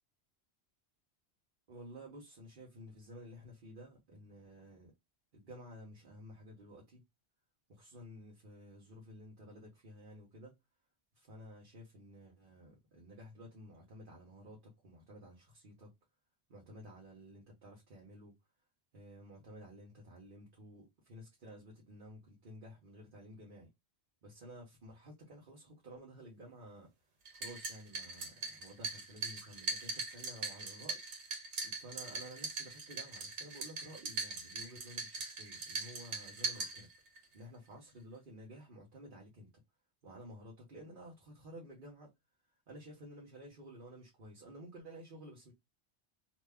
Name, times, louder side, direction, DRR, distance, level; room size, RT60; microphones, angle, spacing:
voice 1, 1.7-4.9 5.3-7.0 7.7-10.5 11.1-15.9 16.5-18.3 18.9-23.7 24.2-26.9 27.3-31.0 31.6-36.9 37.3-39.5 40.0-42.1 42.7-45.5, equal, 50° right, 1.1 m, -53 dB
sound 1, 27.3-37.2, right 3 dB, 85° right, 1.1 m, -41 dB
2.7 x 2.2 x 3.3 m
omnidirectional pair, 1.1 m